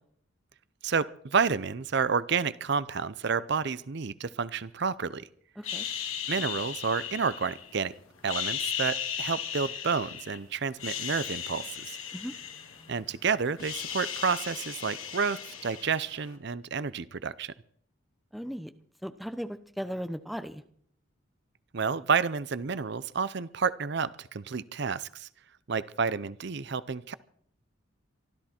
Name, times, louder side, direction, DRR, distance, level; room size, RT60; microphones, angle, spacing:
voice 1, 0.8-5.3 6.3-7.9 8.2-12.0 12.9-17.5 21.7-25.3 25.7-27.1, right 5 dB, 55° right, 17 dB, 0.6 m, -30 dB
sound 1, 5.6-7.8 8.2-10.4 10.7-13.1 13.4-16.3, left 8 dB, 80° left, 2.6 m, -36 dB
voice 2, 5.6-5.9 12.1-12.3 18.3-18.7 19.0-20.6, equal, ahead, 9 dB, 0.8 m, -37 dB
24.0 x 13.5 x 4.4 m, 0.63 s
head